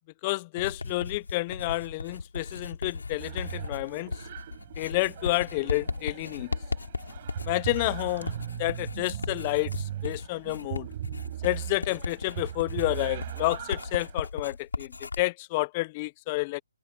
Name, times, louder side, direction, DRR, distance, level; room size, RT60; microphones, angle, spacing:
voice 1, 0.2-4.1 4.8-6.5 7.4-10.9 11.4-16.6, left 22 dB, 25° left, 0.5 m, -30 dB
Writing, 0.6-15.2, left 4 dB, 85° left, 3.8 m, -37 dB
sound 1, 3.2-14.3, right 12 dB, 35° right, 4.7 m, -39 dB
open air
hypercardioid pair, 155°, 0 cm